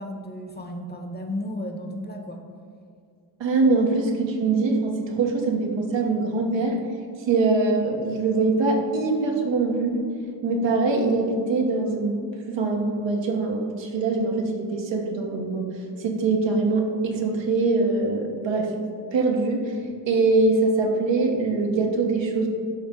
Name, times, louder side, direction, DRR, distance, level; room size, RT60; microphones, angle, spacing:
voice 1, 0.0-2.4, left 1 dB, 20° left, 4 dB, 1.0 m, -33 dB
voice 2, 3.4-6.8 7.3-10.0 10.4-12.2 12.5-15.7 16.0-18.7 19.1-19.7 20.1-22.5, right 3 dB, 80° right, 1 dB, 1.2 m, -23 dB
11.5 x 3.9 x 3.7 m, 2.3 s
cardioid pair, 65°, 44 cm